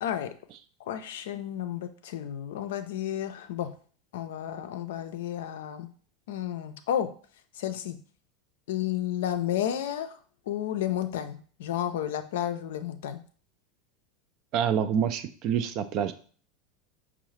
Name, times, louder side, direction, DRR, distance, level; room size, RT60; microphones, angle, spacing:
voice 1, 0.0-0.3 0.8-3.7 4.1-5.9 6.3-7.1 7.6-8.0 8.7-10.1 10.5-13.2, left 11 dB, 65° left, 8 dB, 0.4 m, -32 dB
voice 2, 14.5-16.1, right 8 dB, 45° right, 11 dB, 0.4 m, -27 dB
5.3 x 2.0 x 3.0 m, 0.43 s
figure-of-eight pair, 80°, 0 cm